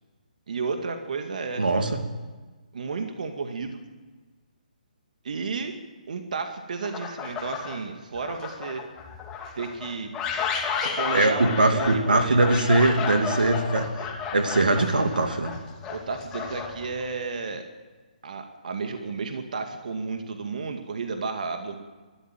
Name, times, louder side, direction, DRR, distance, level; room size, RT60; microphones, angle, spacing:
voice 1, 0.5-1.6 2.7-3.8 5.2-5.7 6.1-8.8 9.6-10.1 10.7-12.7 15.9-17.7 18.2-21.7, right 4 dB, 65° right, 5 dB, 2.2 m, -32 dB
voice 2, 1.6-2.0 11.1-13.9 14.3-15.5, right 2 dB, 85° right, 6 dB, 2.5 m, -21 dB
sound 1, 6.8-7.8 8.1-17.1, left 6 dB, 15° left, 2.9 m, -32 dB
21.5 x 13.5 x 9.1 m, 1.3 s
hypercardioid pair, 145°, 5 cm